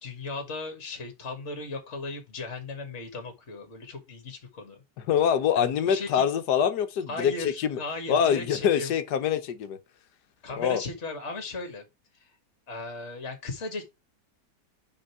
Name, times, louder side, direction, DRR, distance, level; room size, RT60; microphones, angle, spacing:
voice 1, 0.0-4.8 5.6-6.2 7.1-8.9 10.4-11.8 12.2-12.3 12.7-13.8, left 3 dB, 40° left, 1.9 m, -36 dB
voice 2, 5.1-7.8 8.1-9.8 10.6-10.8, left 8 dB, 70° left, 1.5 m, -25 dB
5.4 x 5.1 x 4.9 m
omnidirectional pair, 1.9 m